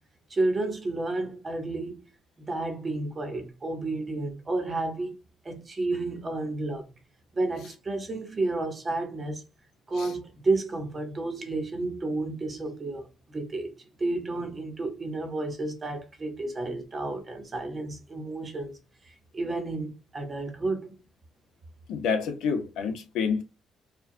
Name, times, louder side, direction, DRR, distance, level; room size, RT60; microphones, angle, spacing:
voice 1, 0.3-2.0 2.4-5.1 5.4-6.9 7.3-9.4 9.9-13.0 13.3-13.7 14.0-18.8 19.1-21.0, right 2 dB, 20° right, 0.8 m, -31 dB
voice 2, 21.9-23.4, left 6 dB, 75° left, 0.9 m, -28 dB
4.5 x 2.3 x 2.6 m
cardioid pair, 160°, 0 cm